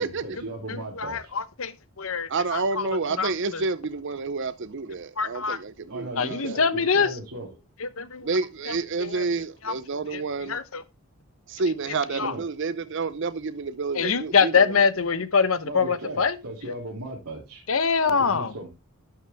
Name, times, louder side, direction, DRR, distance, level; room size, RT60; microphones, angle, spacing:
voice 1, 0.0-1.3 5.9-7.5 12.1-12.4 15.6-17.6 18.0-18.7, right 2 dB, 90° right, 3.0 m, -37 dB
voice 2, 0.7-2.9 3.2-3.6 5.2-5.6 6.2-7.2 7.8-8.3 8.7-8.8 9.0-9.2 9.6-9.7 10.1-10.8 12.1-12.3 13.9-16.4 16.7-16.8 17.7-18.5, left 5 dB, 65° left, 1.0 m, -24 dB
voice 3, 2.3-6.4 8.2-10.6 11.5-14.6, right 4 dB, 55° right, 0.6 m, -29 dB
12.0 x 6.4 x 3.5 m
head